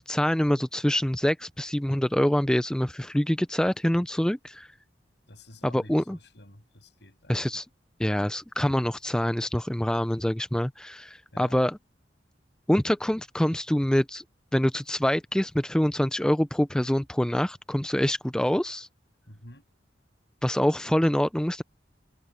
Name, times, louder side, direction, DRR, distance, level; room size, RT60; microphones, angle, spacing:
voice 1, 0.1-4.7 5.6-6.2 7.3-7.6 8.0-11.8 12.7-14.2 14.5-18.9 20.4-21.6, equal, 5° left, 0.3 m, -25 dB
voice 2, 5.3-7.4 11.3-11.6 19.3-19.6, left 1 dB, 70° left, 6.9 m, -49 dB
head